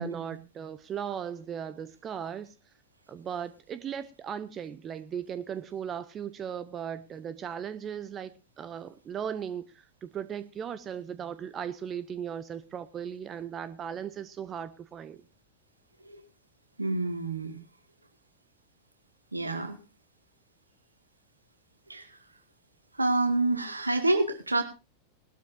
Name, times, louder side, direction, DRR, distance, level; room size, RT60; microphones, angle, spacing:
voice 1, 0.0-2.5 3.1-15.2, right 8 dB, 25° right, 0.8 m, -37 dB
voice 2, 16.8-17.6 19.3-19.8 21.9-22.1 23.0-24.6, right 2 dB, 80° right, 2.0 m, -27 dB
20.0 x 12.5 x 2.7 m
figure-of-eight pair, 90°, 0 cm